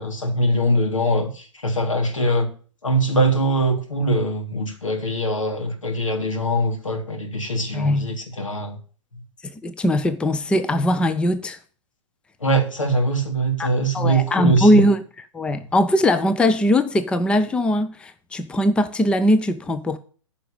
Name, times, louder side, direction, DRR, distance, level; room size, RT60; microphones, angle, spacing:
voice 1, 0.0-2.5 2.8-8.8 12.4-14.8, right 1 dB, 90° left, 3.1 m, -22 dB
voice 2, 7.7-8.2 9.4-11.6 13.6-13.7 13.9-20.0, equal, 5° left, 0.6 m, -20 dB
10.0 x 5.3 x 7.1 m
hypercardioid pair, 125°, 16 cm